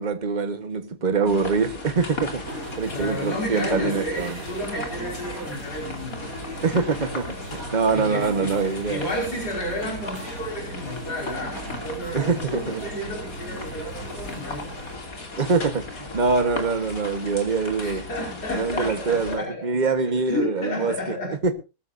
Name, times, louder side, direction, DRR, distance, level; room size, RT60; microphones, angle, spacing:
voice 1, 0.0-2.4 2.8-4.4 6.6-9.0 12.1-12.9 15.4-18.0 18.5-21.1 21.4-21.5, right 4 dB, 30° right, 1.4 m, -24 dB
sound 1, 1.3-19.4, left 2 dB, 60° left, 3.3 m, -36 dB
sound 2, 2.5-15.0, right 1 dB, 60° right, 5.8 m, -38 dB
voice 2, 2.9-6.2 7.9-14.7 17.8-19.7 20.0-21.3, equal, 80° left, 5.9 m, -32 dB
20.5 x 13.5 x 2.7 m
omnidirectional pair, 1.7 m